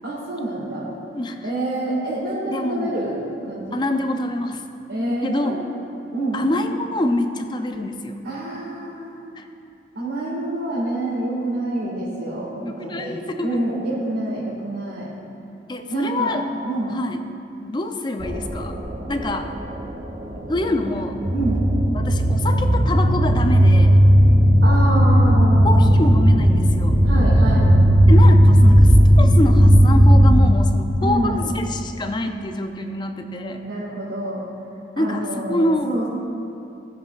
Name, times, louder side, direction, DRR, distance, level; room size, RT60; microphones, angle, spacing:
voice 1, 0.0-0.9 1.4-3.2 3.4-3.8 4.9-5.6 6.1-6.5 8.2-9.3 9.9-15.1 15.9-16.3 16.6-17.0 21.3-21.7 24.6-25.9 27.0-27.7 31.0-31.5 33.6-34.4 35.0-36.1, right 1 dB, 85° right, -9 dB, 2.0 m, -27 dB
voice 2, 1.1-1.5 2.5-3.0 3.7-4.6 5.2-5.6 6.3-8.2 9.4-9.5 12.7-13.5 15.7-16.4 16.9-17.2 17.6-18.8 19.1-19.5 20.5-21.2 21.9-24.0 25.6-27.0 28.1-33.6 35.0-35.9, left 1 dB, 25° left, 6 dB, 0.4 m, -25 dB
sound 1, 18.2-30.4, equal, 35° right, 0.7 m, -15 dB
17.5 x 7.5 x 2.5 m, 2.7 s
head